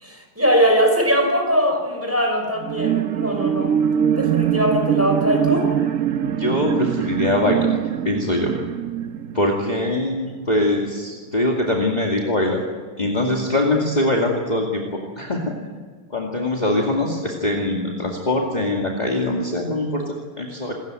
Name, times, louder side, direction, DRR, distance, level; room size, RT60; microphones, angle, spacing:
voice 1, 0.0-3.7 4.1-5.7, equal, 10° right, 3 dB, 5.6 m, -21 dB
sound 1, 2.6-10.4 10.8-10.9, right 10 dB, 60° right, 1.1 m, -23 dB
voice 2, 6.3-7.8 8.0-8.5 9.3-12.6 13.0-14.8 15.2-15.5 16.1-20.7, left 1 dB, 25° left, -1 dB, 2.4 m, -22 dB
27.0 x 15.0 x 9.2 m, 1.5 s
omnidirectional pair, 1.8 m